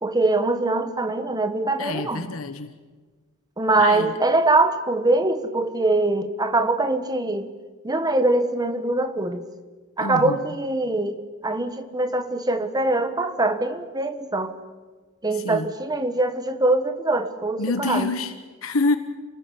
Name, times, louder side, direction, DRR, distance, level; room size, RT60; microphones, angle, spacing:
voice 1, 0.0-2.2 3.6-7.5 7.8-9.5 10.0-14.6 15.2-18.1, right 2 dB, 20° right, 9 dB, 1.4 m, -23 dB
voice 2, 1.8-2.7 3.8-4.2 10.0-10.5 15.3-15.7 17.6-18.3 18.6-19.0, left 3 dB, 80° left, 9 dB, 1.3 m, -26 dB
28.5 x 19.5 x 7.1 m, 1.4 s
head